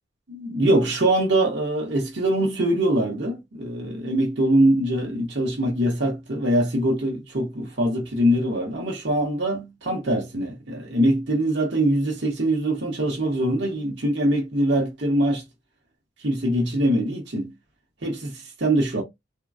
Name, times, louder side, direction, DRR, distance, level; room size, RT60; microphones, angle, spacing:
voice 1, 0.3-15.4 16.2-17.5 18.0-19.0, right 1 dB, 60° right, 1.0 m, -23 dB
3.6 x 2.1 x 2.3 m
head